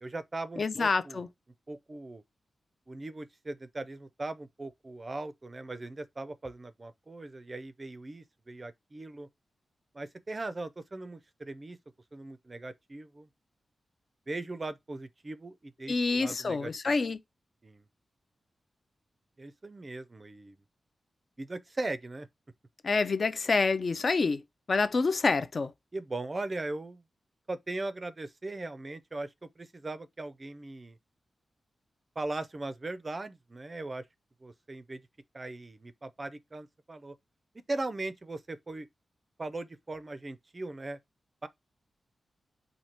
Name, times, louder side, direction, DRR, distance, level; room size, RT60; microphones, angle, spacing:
voice 1, 0.0-1.2 1.7-2.2 2.9-9.3 9.9-11.8 12.1-13.3 14.3-17.0 17.6-17.8 19.4-20.5 21.4-22.3 25.9-27.0 27.5-31.0 32.2-34.0 34.4-35.0 35.3-37.1 37.7-38.9 39.4-41.0 41.4-41.5, right 2 dB, 25° right, 0.4 m, -39 dB
voice 2, 0.6-1.3 15.9-17.2 22.8-24.4 24.7-25.7, left 4 dB, 45° left, 0.4 m, -27 dB
4.5 x 2.7 x 4.2 m
wide cardioid pair, 150°, 0 cm